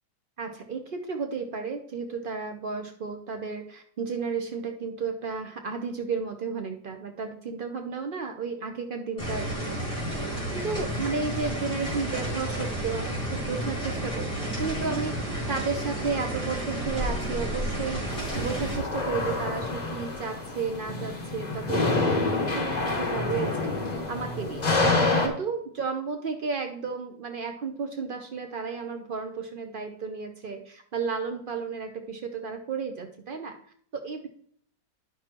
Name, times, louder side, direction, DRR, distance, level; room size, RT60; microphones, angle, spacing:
voice 1, 0.4-9.8 10.5-23.5 24.1-24.7 25.0-33.5 33.9-34.3, right 5 dB, 75° right, 5 dB, 0.4 m, -33 dB
sound 1, 9.2-18.8, right 1 dB, 5° left, 3.2 m, -31 dB
sound 2, 18.1-25.3, left 3 dB, 25° left, 1.2 m, -27 dB
10.5 x 6.1 x 2.9 m, 0.62 s
omnidirectional pair, 1.9 m